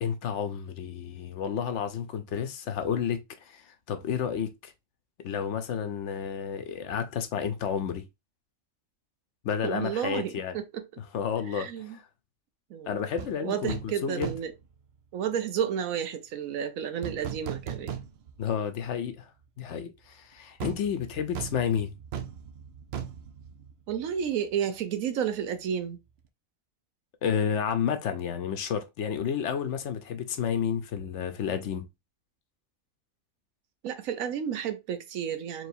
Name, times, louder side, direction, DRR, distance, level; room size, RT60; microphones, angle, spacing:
voice 1, 0.0-4.7 5.2-8.0 9.4-10.6 11.1-12.0 12.9-14.3 18.4-19.3 19.6-21.9 27.2-31.8, left 7 dB, 65° left, 0.9 m, -31 dB
voice 2, 9.6-10.8 11.5-12.0 12.7-13.0 13.4-14.5 15.1-17.9 23.9-26.0 33.8-35.7, right 8 dB, 85° right, 1.1 m, -31 dB
sound 1, 13.2-13.3 13.7-13.9 14.2-14.6 17.0-18.5 18.8-18.9 20.6-24.3 24.5-24.7, right 8 dB, 60° right, 0.7 m, -38 dB
4.7 x 3.0 x 2.6 m
omnidirectional pair, 1.4 m